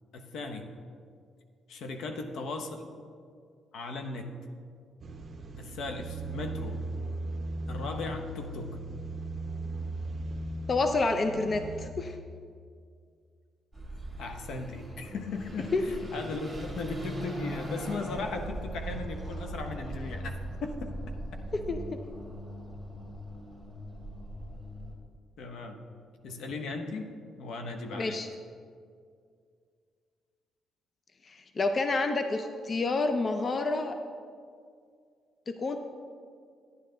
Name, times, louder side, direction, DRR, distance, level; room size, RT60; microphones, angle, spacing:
voice 1, 0.1-0.7 1.7-2.9 3.7-4.4 5.6-6.8 7.7-8.8 14.2-20.3 20.6-21.0 25.4-25.9 26.2-27.1 27.4-28.2, left 3 dB, 75° left, 5 dB, 0.9 m, -37 dB
sound 1, 5.0-11.9, right 2 dB, 40° right, 0.8 m, -37 dB
voice 2, 10.7-12.2 15.7-15.8 21.5-22.0 27.9-28.3 31.2-34.0 35.5-35.8, left 3 dB, 40° left, 7 dB, 0.6 m, -29 dB
Car passing by / Accelerating revving vroom, 13.7-24.9, right 1 dB, 10° left, 2.3 m, -40 dB
10.0 x 9.5 x 3.8 m, 2.2 s
cardioid pair, 90°, 0 cm